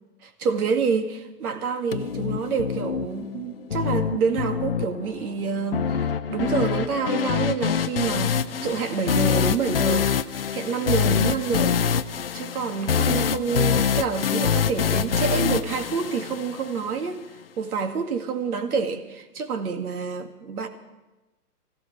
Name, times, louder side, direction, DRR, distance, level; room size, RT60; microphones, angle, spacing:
voice 1, 0.2-10.1 10.5-11.8 12.3-17.2 17.6-20.7, right 5 dB, 70° right, 6 dB, 2.1 m, -27 dB
sound 1, 1.9-16.9, left 7 dB, 40° left, 0.4 m, -25 dB
24.5 x 16.0 x 3.2 m, 1.1 s
hypercardioid pair, 165°, 47 cm